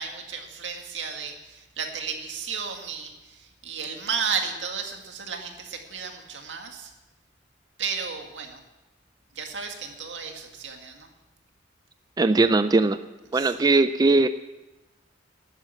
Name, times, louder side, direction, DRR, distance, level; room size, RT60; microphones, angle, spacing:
voice 1, 0.0-6.9 7.8-8.6 9.3-11.1 13.3-13.7, right 6 dB, 85° right, 3 dB, 2.0 m, -33 dB
voice 2, 12.2-13.0 13.3-14.3, right 3 dB, 20° right, 11 dB, 0.4 m, -19 dB
12.5 x 9.9 x 7.1 m, 1.0 s
head